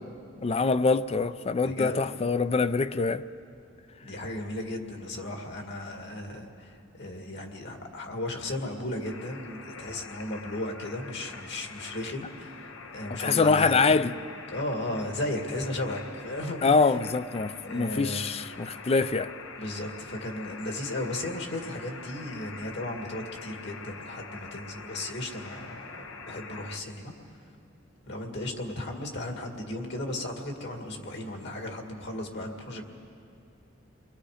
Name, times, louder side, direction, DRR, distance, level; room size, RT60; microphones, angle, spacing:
voice 1, 0.4-3.2 13.1-14.1 16.6-19.3, left 4 dB, 30° left, 0.4 m, -24 dB
voice 2, 1.6-2.0 4.0-14.0 14.5-16.9 17.6-18.3 19.6-27.1 28.0-32.8, left 1 dB, 60° left, 2.1 m, -35 dB
sound 1, 9.0-26.8, left 4 dB, 90° left, 1.2 m, -44 dB
29.5 x 21.5 x 5.0 m
head